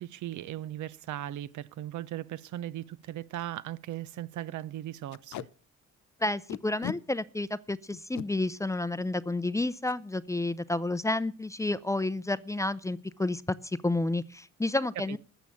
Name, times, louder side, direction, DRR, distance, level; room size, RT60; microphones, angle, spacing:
voice 1, 0.0-5.5 15.1-15.2, right 13 dB, 75° right, 0.7 m, -38 dB
Packing tape duct tape, 1.5-1.6 2.1-2.2 2.4-2.6 3.0-3.1 3.4-3.6 3.9-4.1 5.1-5.5 6.5-7.0 7.9-8.3 9.8-10.0 10.4-10.5 10.8-11.2, left 13 dB, 70° left, 0.7 m, -39 dB
voice 2, 6.2-15.2, left 2 dB, 10° left, 0.5 m, -30 dB
13.5 x 7.2 x 8.7 m
cardioid pair, 90°, 30 cm